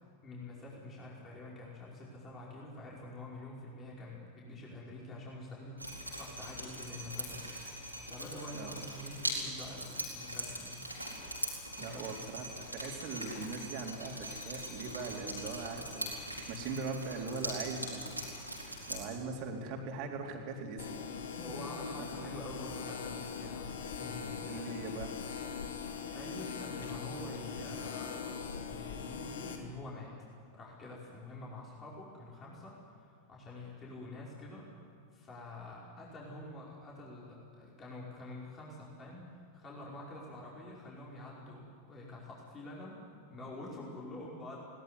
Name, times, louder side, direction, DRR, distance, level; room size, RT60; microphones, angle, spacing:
voice 1, 0.2-7.5 8.1-10.8 11.8-12.1 21.4-24.7 26.0-30.2 30.5-34.7 35.1-43.0 43.3-44.6, left 2 dB, 25° left, -4 dB, 5.2 m, -47 dB
Drip, 5.8-19.0, equal, 90° right, 4.4 m, -41 dB
voice 2, 11.8-18.2 18.9-21.0 21.9-22.0 24.5-25.2, right 4 dB, 45° right, 1 dB, 3.6 m, -40 dB
sound 1, 20.8-29.6, left 6 dB, 65° left, 2.2 m, -41 dB
21.0 x 18.5 x 9.7 m, 2.3 s
figure-of-eight pair, 90°, 0 cm